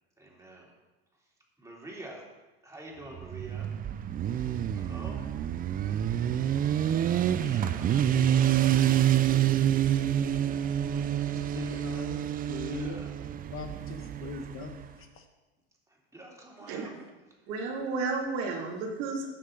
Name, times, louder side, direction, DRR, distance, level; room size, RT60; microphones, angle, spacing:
voice 1, 0.2-0.7 1.6-2.2 2.6-3.7 4.3-5.3 7.0-8.6 10.9-12.1 12.6-13.2 15.9-16.9, right 1 dB, 10° right, -3 dB, 2.9 m, -48 dB
Motorcycle, 3.1-14.8, right 10 dB, 25° right, 0.4 m, -27 dB
voice 2, 11.5-13.0 13.5-14.8, left 5 dB, 40° left, 6 dB, 1.1 m, -40 dB
voice 3, 17.5-19.3, right 4 dB, 65° right, 0 dB, 2.5 m, -32 dB
16.0 x 6.4 x 3.9 m, 1.2 s
supercardioid pair, 110°, 34 cm